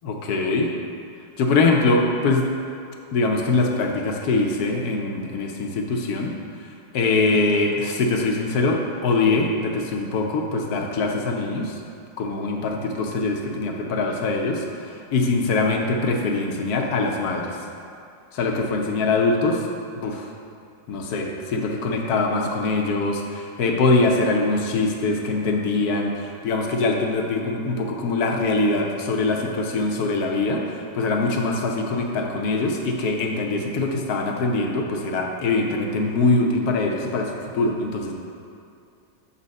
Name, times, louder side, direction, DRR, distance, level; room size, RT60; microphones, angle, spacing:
voice 1, 0.0-0.7 1.4-2.4 3.1-6.4 6.9-11.8 12.2-17.6 18.3-19.7 19.9-20.3 20.9-38.1, left 3 dB, 65° left, 1 dB, 1.1 m, -23 dB
7.2 x 4.2 x 5.2 m, 2.5 s
omnidirectional pair, 2.0 m